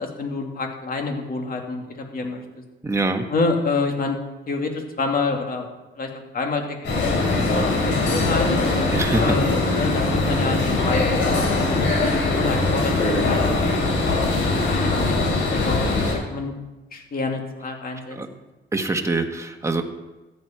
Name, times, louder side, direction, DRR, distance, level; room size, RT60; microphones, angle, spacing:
voice 1, 0.0-2.4 3.3-4.2 4.5-5.7 6.0-7.5 7.8-8.5 9.2-12.9 13.2-14.0 14.6-16.5 16.9-18.2, left 3 dB, 45° left, 2 dB, 2.6 m, -27 dB
voice 2, 2.8-3.2 8.9-9.4 18.1-18.3 18.7-19.8, right 3 dB, 15° right, 4 dB, 1.4 m, -24 dB
sound 1, 6.8-16.1, left 3 dB, 65° left, 5.3 m, -21 dB
14.5 x 9.7 x 4.5 m, 1.1 s
cardioid pair, 90°, 20 cm